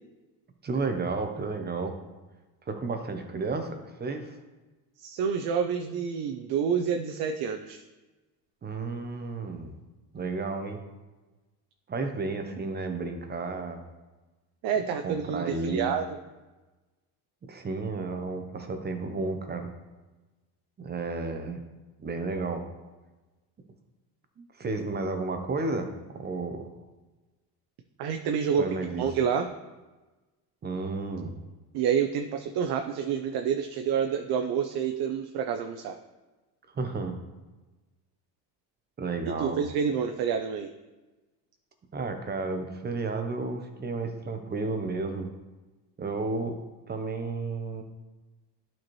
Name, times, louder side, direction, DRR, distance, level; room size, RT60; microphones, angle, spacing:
voice 1, 0.6-2.0 2.7-4.4 8.6-9.7 10.1-10.8 11.9-13.8 15.0-15.9 17.5-19.7 20.8-21.6 22.0-22.6 24.4-25.9 26.1-26.8 28.6-29.0 30.6-31.3 36.7-37.2 39.0-39.6 41.9-45.3 46.0-46.6 46.9-47.8, right 3 dB, 25° right, 6 dB, 0.8 m, -32 dB
voice 2, 5.0-7.8 14.6-16.2 28.0-28.7 29.0-29.5 31.7-36.0 39.4-40.7, right 7 dB, 60° right, 5 dB, 0.6 m, -28 dB
11.5 x 4.4 x 3.1 m, 1.2 s
cardioid pair, 135°, 44 cm